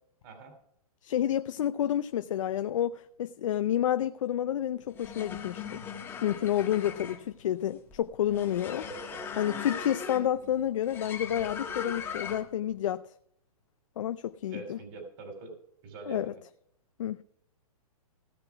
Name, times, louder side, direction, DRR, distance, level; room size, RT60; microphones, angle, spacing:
voice 1, 0.2-0.5 8.8-9.2 14.5-15.6 15.8-16.4, right 3 dB, 35° right, 2.7 m, -44 dB
voice 2, 1.0-5.8 6.2-8.8 9.4-13.0 14.0-14.8 16.1-16.3 17.0-17.2, left 11 dB, 55° left, 0.5 m, -29 dB
sound 1, 4.8-12.6, left 6 dB, 10° left, 1.4 m, -39 dB
16.5 x 5.9 x 5.8 m
hypercardioid pair, 155°, 19 cm